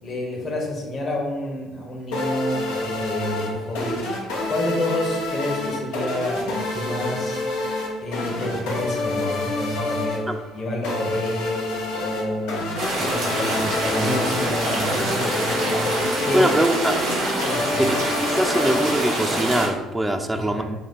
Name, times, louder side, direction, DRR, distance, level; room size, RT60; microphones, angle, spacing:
voice 1, 0.0-4.2 4.5-7.4 8.0-11.7 12.0-16.5 17.4-17.9 20.3-20.6, left 1 dB, 35° left, -2 dB, 1.0 m, -29 dB
sound 1, 2.1-19.6, left 2 dB, 65° left, 0.7 m, -28 dB
sound 2, 12.8-19.7, right 1 dB, 60° right, 1.1 m, -25 dB
voice 2, 16.3-17.0 17.8-17.9 18.4-20.6, right 1 dB, 10° right, 7 dB, 0.4 m, -22 dB
3.6 x 2.3 x 4.4 m, 1.1 s
figure-of-eight pair, 50°, 0 cm